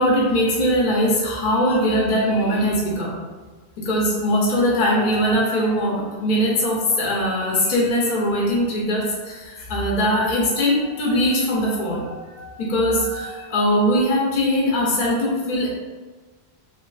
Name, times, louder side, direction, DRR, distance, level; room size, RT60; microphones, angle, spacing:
voice 1, 0.0-3.2 3.8-15.8, equal, 55° left, -4 dB, 0.6 m, -21 dB
2.4 x 2.3 x 2.3 m, 1.3 s
omnidirectional pair, 1.1 m